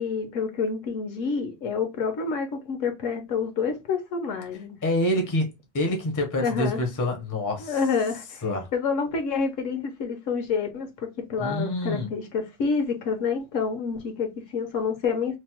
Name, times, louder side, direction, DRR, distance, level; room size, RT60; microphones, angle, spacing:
voice 1, 0.0-4.8 6.4-6.8 7.6-8.4 8.7-15.4, left 5 dB, 70° left, 1.1 m, -28 dB
voice 2, 4.8-7.8 8.4-8.7 11.4-12.1, left 1 dB, 25° left, 0.5 m, -27 dB
2.9 x 2.0 x 2.8 m
omnidirectional pair, 1.4 m